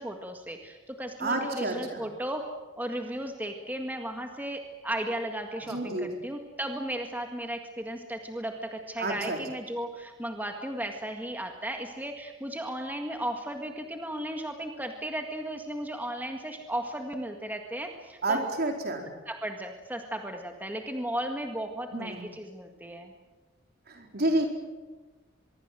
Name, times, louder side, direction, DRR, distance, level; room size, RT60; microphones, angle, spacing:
voice 1, 0.0-2.4 2.8-18.4 19.3-23.1, right 1 dB, 10° right, 4 dB, 1.8 m, -35 dB
voice 2, 1.2-2.0 5.7-6.2 9.0-9.4 18.2-19.1 21.9-22.2 23.9-24.5, right 2 dB, 55° right, 3 dB, 4.6 m, -29 dB
25.0 x 22.5 x 7.7 m, 1.2 s
head